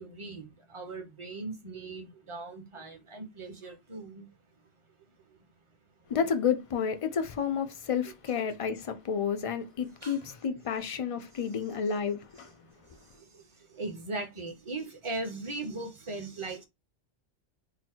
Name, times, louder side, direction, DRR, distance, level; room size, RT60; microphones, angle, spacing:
voice 1, 0.0-4.3 10.0-10.2 11.4-11.5 13.7-16.6, right 2 dB, 30° right, 0.8 m, -39 dB
voice 2, 6.1-12.5, left 7 dB, 45° left, 0.4 m, -30 dB
3.8 x 2.1 x 4.3 m
omnidirectional pair, 1.2 m